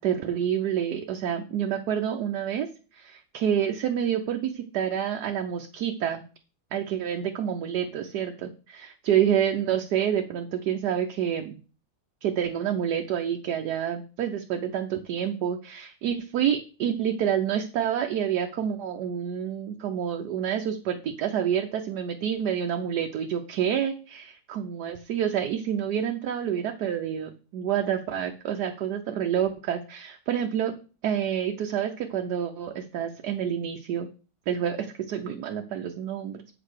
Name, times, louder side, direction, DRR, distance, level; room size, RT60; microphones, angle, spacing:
voice 1, 0.0-2.7 2.9-6.2 6.7-11.6 12.2-30.7 31.0-34.1 34.5-36.5, right 9 dB, 80° right, 3 dB, 1.3 m, -28 dB
8.3 x 4.0 x 6.4 m, 0.36 s
omnidirectional pair, 1.7 m